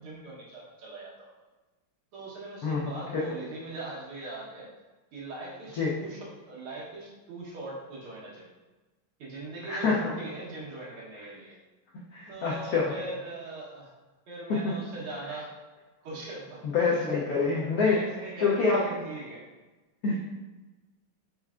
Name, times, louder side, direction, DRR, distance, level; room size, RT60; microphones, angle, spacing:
voice 1, 0.0-1.3 2.1-4.7 5.1-8.5 9.2-11.6 12.3-13.9 14.3-15.6 16.0-16.6 17.2-19.4, right 2 dB, 85° right, -5 dB, 2.1 m, -41 dB
voice 2, 2.6-3.2 5.7-5.9 9.7-10.1 12.1-13.0 14.5-14.7 16.6-18.0 18.4-18.9 20.0-20.2, left 4 dB, 85° left, -4 dB, 0.8 m, -26 dB
4.6 x 4.2 x 2.4 m, 1.2 s
omnidirectional pair, 2.3 m